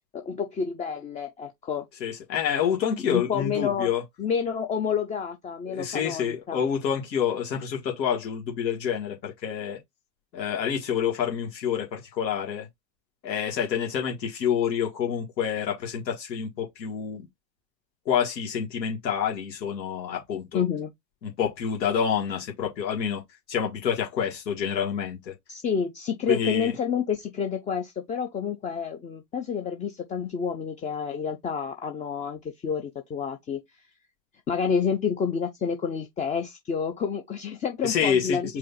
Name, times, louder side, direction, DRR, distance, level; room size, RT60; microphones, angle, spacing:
voice 1, 0.1-1.9 3.0-3.9 4.2-6.6 20.5-20.9 25.5-33.6 34.5-38.6, left 6 dB, 15° left, 0.4 m, -29 dB
voice 2, 2.0-4.0 5.7-9.8 10.3-12.7 13.2-17.3 18.1-20.6 21.2-23.2 23.5-25.3 26.3-26.8 37.8-38.6, left 8 dB, 85° left, 1.8 m, -28 dB
4.9 x 2.5 x 3.9 m
hypercardioid pair, 90°, 50 cm